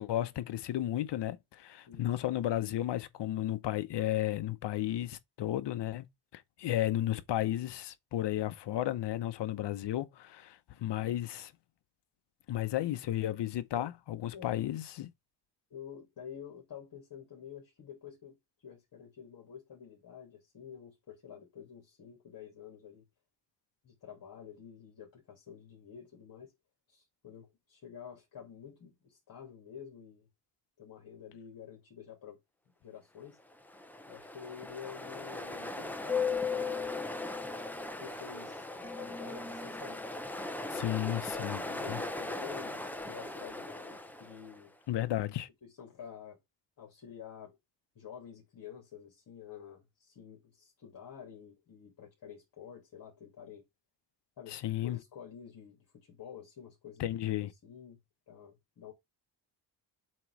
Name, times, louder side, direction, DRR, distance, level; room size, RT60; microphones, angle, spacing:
voice 1, 0.0-6.0 6.3-11.5 12.5-15.1 40.7-41.6 41.9-42.0 44.9-45.5 54.5-55.0 57.0-57.5, left 13 dB, 70° left, 0.9 m, -33 dB
voice 2, 1.9-2.2 13.7-13.9 14.3-14.6 15.7-23.1 23.8-26.5 26.9-30.3 30.8-32.4 32.8-33.4 34.1-37.0 37.7-40.0 40.7-44.7 45.6-46.4 46.8-47.6 47.9-53.6 54.4-57.1 57.6-58.0 58.3-58.9, left 8 dB, 50° left, 2.7 m, -49 dB
Ocean, 33.5-44.6, left 3 dB, 5° left, 0.7 m, -38 dB
7.5 x 3.1 x 4.7 m
wide cardioid pair, 145°, 43 cm